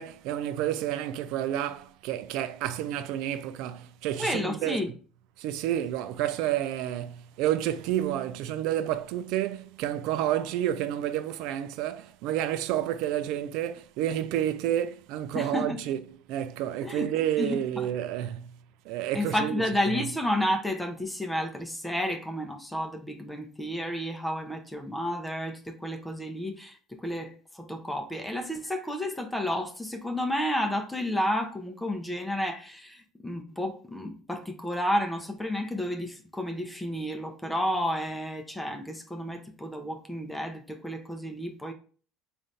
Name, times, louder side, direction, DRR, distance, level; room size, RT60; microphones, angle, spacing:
voice 1, 0.0-4.8 5.4-18.6 18.9-20.1, right 11 dB, 70° right, 0.3 m, -30 dB
voice 2, 4.2-4.9 15.3-15.8 16.8-17.9 19.1-41.7, left 1 dB, 5° left, 0.7 m, -31 dB
3.9 x 2.5 x 3.2 m
hypercardioid pair, 80°, 0 cm